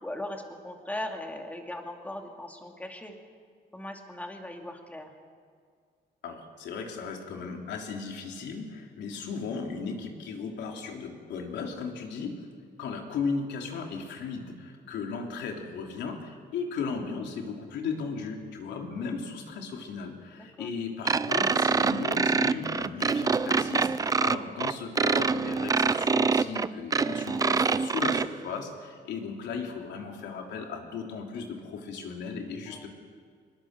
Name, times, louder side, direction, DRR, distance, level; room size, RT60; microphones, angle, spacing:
voice 1, 0.0-3.2 3.7-5.1 20.4-20.7 32.7-32.9, left 1 dB, 10° left, 3 dB, 2.5 m, -39 dB
voice 2, 6.2-12.5 12.8-32.9, left 5 dB, 80° left, 2 dB, 3.5 m, -36 dB
sound 1, 21.1-28.3, right 4 dB, 20° right, 0.5 m, -25 dB
24.5 x 20.5 x 6.8 m, 2.1 s
cardioid pair, 140°, 18 cm